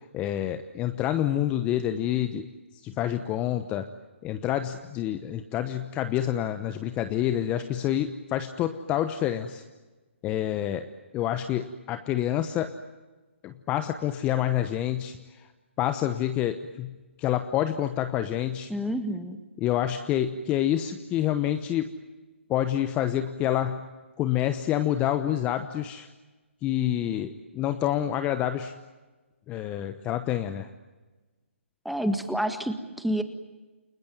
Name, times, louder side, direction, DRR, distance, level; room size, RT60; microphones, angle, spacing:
voice 1, 0.1-2.5 2.8-3.9 4.2-9.6 10.2-12.7 13.4-15.5 15.8-18.7 19.6-21.9 22.5-23.8 24.2-26.1 26.6-28.8 29.5-30.7, left 11 dB, 20° left, 9 dB, 1.0 m, -28 dB
voice 2, 18.7-19.4 31.8-33.2, equal, ahead, 8 dB, 1.6 m, -28 dB
29.5 x 20.5 x 9.4 m, 1.2 s
hypercardioid pair, 150°, 7 cm